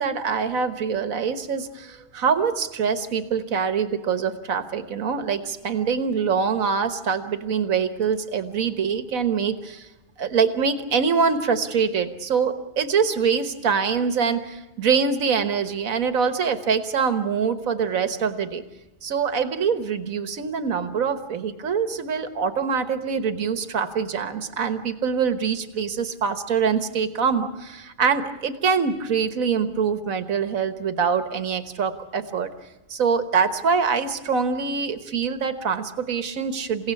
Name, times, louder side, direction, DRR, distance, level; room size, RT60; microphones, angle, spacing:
voice 1, 0.0-9.9 10.2-18.6 19.0-32.5 32.9-36.9, right 6 dB, 85° right, 9 dB, 1.7 m, -24 dB
29.0 x 17.0 x 8.4 m, 1.0 s
omnidirectional pair, 1.4 m